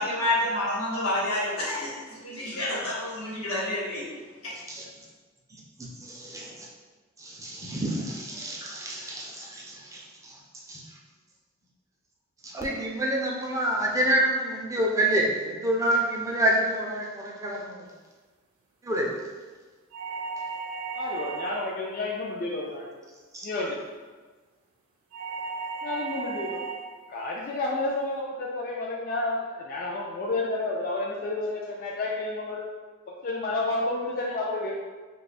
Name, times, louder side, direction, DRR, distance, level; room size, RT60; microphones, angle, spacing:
voice 1, 0.0-4.1 4.4-4.5, left 1 dB, 90° left, -5 dB, 1.1 m, -29 dB
voice 2, 5.8-6.5 7.2-10.0 10.7-10.8 12.5-17.8 18.9-19.1 23.3-23.4, right 1 dB, 15° right, -2 dB, 0.5 m, -27 dB
sound 1, 19.9-21.8 25.1-26.9, right 5 dB, 75° right, 0.6 m, -35 dB
voice 3, 20.9-22.8 23.4-23.9 25.8-26.6 27.1-32.6 33.2-34.7, left 2 dB, 45° left, -3 dB, 0.4 m, -30 dB
3.0 x 2.3 x 4.1 m, 1.3 s
head